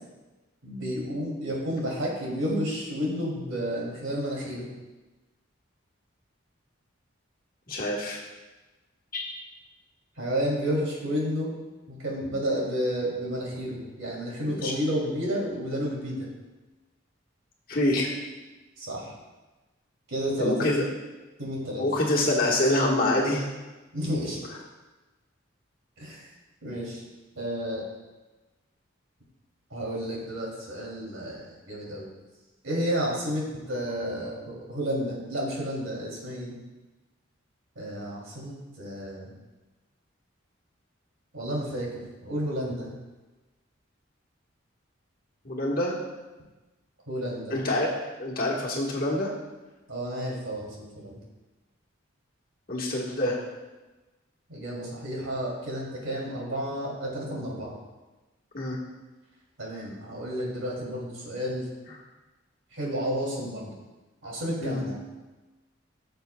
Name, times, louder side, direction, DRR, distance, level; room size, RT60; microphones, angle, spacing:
voice 1, 0.6-4.7 10.2-11.5 11.9-16.3 18.8-19.1 20.1-20.5 21.4-21.8 23.9-24.4 26.0-26.3 26.6-27.0 27.3-27.9 29.7-32.1 32.6-36.6 37.7-39.3 41.3-41.9 42.2-42.9 47.1-47.5 49.9-51.2 54.5-57.7 59.6-61.7 62.7-63.7 64.2-65.0, equal, 85° right, -4 dB, 2.9 m, -31 dB
voice 2, 7.7-8.2 9.1-9.2 14.5-14.7 17.7-18.1 20.4-20.8 21.8-23.5 45.4-45.9 47.5-47.9 48.2-49.3 52.7-53.4 58.5-58.8 64.6-64.8, left 1 dB, 45° left, -3 dB, 1.5 m, -26 dB
15.0 x 6.8 x 2.3 m, 1.1 s
head